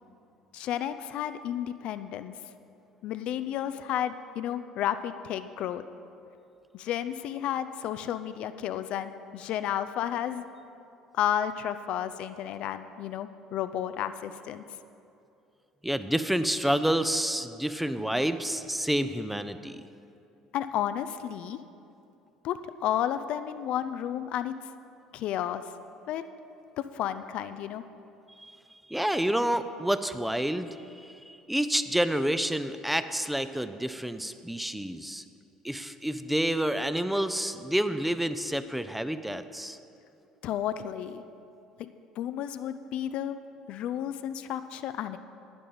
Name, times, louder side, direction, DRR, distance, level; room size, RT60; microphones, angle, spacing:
voice 1, 0.5-2.3 3.0-5.9 6.7-10.5 11.1-14.6 20.5-21.6 22.4-24.5 25.1-25.6 26.1-26.2 26.8-27.8 40.4-41.2 41.8-41.9 42.2-43.4 43.7-45.2, left 10 dB, 55° left, 11 dB, 0.4 m, -32 dB
voice 2, 15.8-19.8 28.4-28.6 28.9-35.2 35.6-39.8, right 1 dB, 5° right, 11 dB, 0.5 m, -29 dB
11.0 x 9.7 x 5.5 m, 2.7 s
figure-of-eight pair, 55°, 2 cm